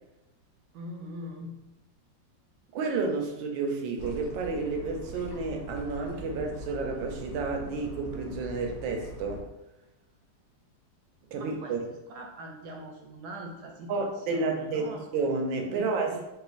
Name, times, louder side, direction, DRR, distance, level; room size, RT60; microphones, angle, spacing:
voice 1, 0.7-1.6 11.3-11.8 12.1-15.0 15.7-16.2, right 1 dB, 70° right, 1 dB, 1.0 m, -42 dB
voice 2, 2.7-9.5 11.3-11.8 13.9-16.2, right 3 dB, 90° right, 3 dB, 1.4 m, -31 dB
sound 1, 4.0-9.4, equal, 50° left, 1.1 m, -42 dB
4.0 x 2.5 x 3.9 m, 0.96 s
omnidirectional pair, 2.1 m